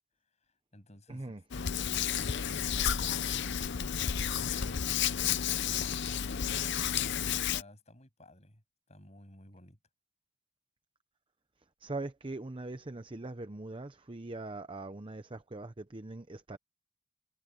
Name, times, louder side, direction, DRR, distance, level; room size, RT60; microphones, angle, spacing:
voice 1, 0.4-9.8, left 1 dB, 35° left, 7.9 m, -56 dB
voice 2, 1.1-1.4 11.8-16.6, right 2 dB, 25° right, 0.8 m, -41 dB
Hands, 1.5-7.6, left 8 dB, 60° left, 0.7 m, -31 dB
head